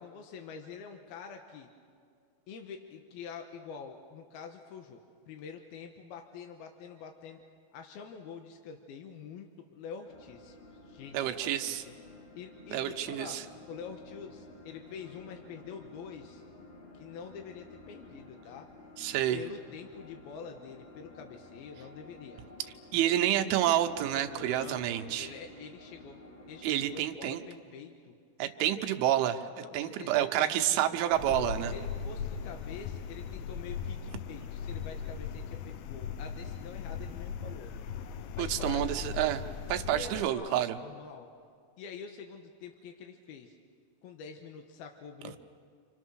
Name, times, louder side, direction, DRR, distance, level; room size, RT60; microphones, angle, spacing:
voice 1, 0.0-1.7 2.5-5.0 5.3-7.4 7.7-10.6 10.8-11.9 12.4-13.4 13.7-16.4 16.9-18.7 19.3-22.4 24.3-26.2 26.5-28.1 29.6-31.0 31.7-37.7 38.3-39.1 39.9-41.3 41.8-43.6 44.0-45.4, left 6 dB, 70° left, 4 dB, 2.5 m, -46 dB
sound 1, 10.1-27.1, left 2 dB, 40° left, 3.1 m, -52 dB
voice 2, 11.1-11.8 12.7-13.4 19.0-19.4 22.9-25.3 26.6-27.4 28.4-31.7 38.4-39.4 39.7-40.8, right 12 dB, 80° right, 6 dB, 3.4 m, -29 dB
sound 2, 31.1-40.3, left 7 dB, 85° left, 3.5 m, -38 dB
28.5 x 27.5 x 6.4 m, 2.3 s
omnidirectional pair, 5.7 m